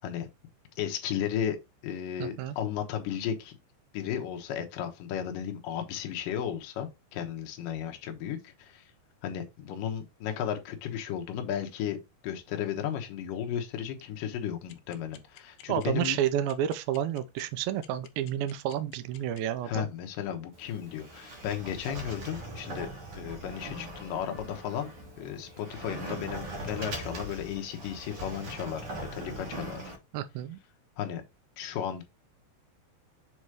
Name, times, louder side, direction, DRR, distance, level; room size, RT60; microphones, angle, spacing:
voice 1, 0.8-1.6 1.8-3.5 3.9-8.8 9.2-12.0 12.2-16.2 19.7-22.9 23.1-24.9 25.2-29.9 31.0-31.2 31.6-32.0, left 9 dB, 65° left, 2.4 m, -34 dB
voice 2, 2.2-2.6 15.7-19.9 30.1-30.6, right 10 dB, 80° right, 2.2 m, -30 dB
sound 1, 14.7-19.4, left 13 dB, 85° left, 2.8 m, -51 dB
Sliding door, 20.5-30.0, right 1 dB, 65° right, 1.3 m, -41 dB
7.5 x 3.1 x 4.7 m
omnidirectional pair, 4.8 m